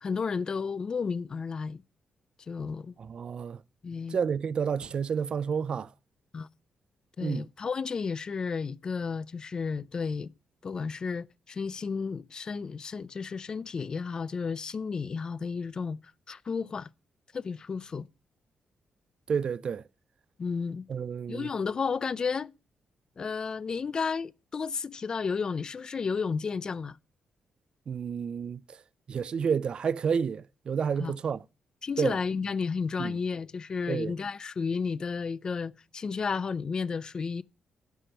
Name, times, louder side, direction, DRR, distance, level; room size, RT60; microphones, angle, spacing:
voice 1, 0.0-1.8 2.5-2.9 3.8-4.2 6.3-6.5 7.2-10.3 10.6-16.0 16.3-16.9 17.3-18.1 20.4-20.9 21.3-22.5 23.2-27.0 31.0-31.2 31.8-37.4, left 5 dB, 35° left, 0.4 m, -32 dB
voice 2, 3.0-3.6 4.1-5.9 7.2-7.5 19.3-19.8 20.9-21.5 27.9-28.6 29.1-31.4 32.0-32.2 33.0-33.1 33.9-34.1, right 6 dB, 50° right, 0.4 m, -30 dB
10.0 x 5.1 x 7.8 m
cardioid pair, 115°, 2 cm